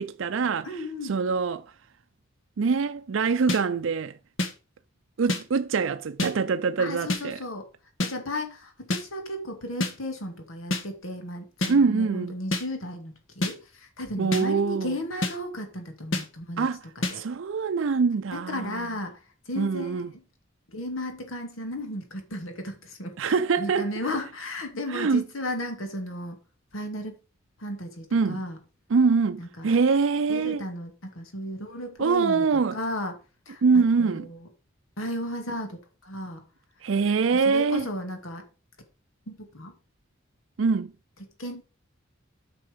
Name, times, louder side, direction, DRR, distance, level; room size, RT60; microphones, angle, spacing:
voice 1, 0.0-1.7 2.6-4.2 5.2-7.4 11.7-12.3 14.2-15.0 16.6-16.8 17.1-18.8 19.6-20.1 23.2-23.9 24.9-25.2 28.1-28.4 28.9-30.6 32.0-32.8 33.6-34.3 36.8-37.9 40.6-40.9, right 5 dB, 70° right, 0.5 m, -24 dB
voice 2, 0.6-1.2 6.8-7.7 8.0-16.7 17.0-17.2 18.3-19.2 19.5-20.0 20.7-26.4 26.7-27.2 27.6-28.6 29.4-29.8 30.3-33.2 33.5-34.5 35.0-36.4 37.3-38.4 39.3-39.7 41.4-41.6, left 1 dB, 90° left, 2.3 m, -35 dB
sound 1, 3.5-3.6 4.4-4.5 5.3-5.4 6.2-6.3 7.1-7.2 8.0-8.1 8.9-9.0 9.8-9.9 10.7-10.8 11.6-11.7 12.5-12.6 13.4-13.5 14.3-14.4 15.2-15.3 16.1-16.2 17.0-17.1, left 2 dB, 70° left, 1.7 m, -26 dB
8.9 x 6.0 x 5.2 m
head